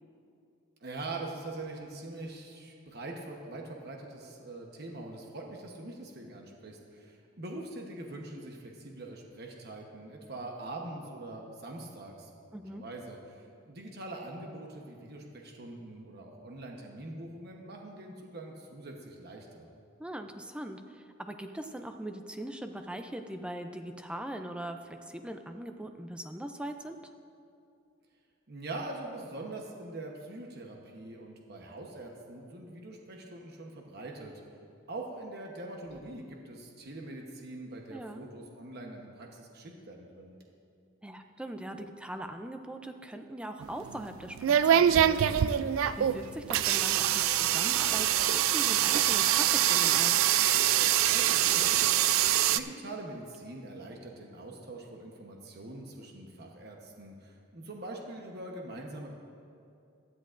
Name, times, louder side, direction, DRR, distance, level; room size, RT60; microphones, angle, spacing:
voice 1, 0.8-19.7 28.5-34.3 34.9-40.3 51.1-52.0 52.5-59.1, right 2 dB, 50° right, 1 dB, 1.1 m, -43 dB
voice 2, 12.5-12.8 20.0-27.0 37.9-38.2 41.0-45.4 46.0-50.3, right 1 dB, 5° right, 6 dB, 0.4 m, -41 dB
sound 1, 43.6-52.6, right 11 dB, 80° right, 0.3 m, -25 dB
16.5 x 12.5 x 2.6 m, 2.5 s
head